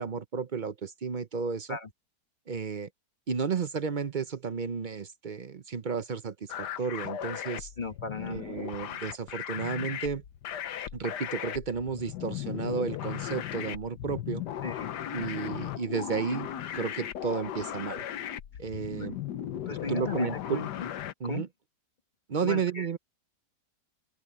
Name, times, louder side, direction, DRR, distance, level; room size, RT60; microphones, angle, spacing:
voice 1, 0.0-1.8 2.5-2.9 3.3-7.7 8.2-10.2 10.9-14.4 15.1-18.0 18.6-19.2 19.9-20.6 21.2-21.5 22.3-23.0, right 5 dB, 50° right, 0.6 m, -32 dB
sound 1, 6.5-21.1, left 11 dB, 75° left, 1.5 m, -37 dB
voice 2, 7.8-8.5 14.6-14.9 19.0-19.1 19.7-20.9 21.2-21.4 22.4-23.0, left 4 dB, 30° left, 1.5 m, -36 dB
open air
omnidirectional pair, 1.8 m